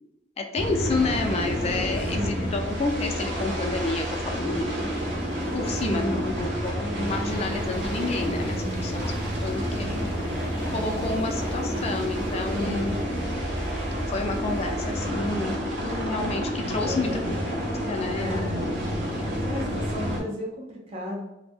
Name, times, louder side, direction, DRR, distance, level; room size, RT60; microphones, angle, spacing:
voice 1, 0.4-4.9 5.5-9.1 9.4-10.0 10.7-13.0 14.1-15.5 15.8-18.5 18.9-19.1, left 3 dB, 35° left, 4 dB, 0.3 m, -30 dB
sound 1, 0.6-20.2, equal, 80° right, 0.9 m, -29 dB
voice 2, 2.0-2.5 5.6-6.6 8.5-9.0 12.5-12.9 16.8-17.3 18.1-18.9 19.4-21.2, equal, 35° right, -3 dB, 0.6 m, -34 dB
Domestic sounds home sounds, 6.8-13.7, equal, 60° right, 1.1 m, -47 dB
2.5 x 2.1 x 3.3 m, 0.91 s
head